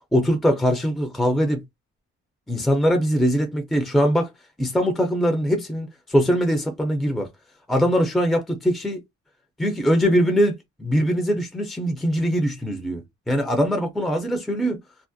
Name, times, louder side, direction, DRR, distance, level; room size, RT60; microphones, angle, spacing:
voice 1, 0.1-1.6 2.5-4.3 4.6-7.3 7.7-9.0 9.6-14.8, equal, ahead, 0.5 m, -22 dB
2.4 x 2.0 x 2.5 m
cardioid pair, 90°, 30 cm